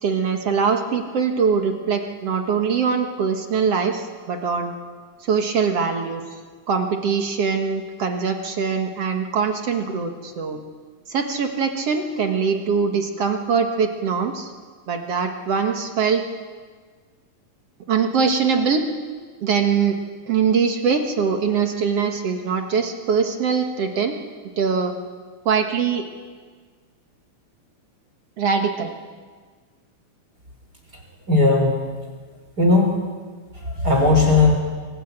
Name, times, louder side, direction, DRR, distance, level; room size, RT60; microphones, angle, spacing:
voice 1, 0.0-4.7 5.2-6.2 6.7-10.6 11.1-14.5 14.9-16.3 17.9-18.9 19.4-20.0 20.3-24.2 24.6-24.9 25.5-26.0 28.4-28.9, right 6 dB, 55° right, 4 dB, 2.4 m, -22 dB
voice 2, 31.3-31.7 32.6-32.9 33.6-34.5, left 3 dB, 30° right, 1 dB, 3.9 m, -16 dB
25.0 x 18.5 x 8.9 m, 1.5 s
omnidirectional pair, 3.5 m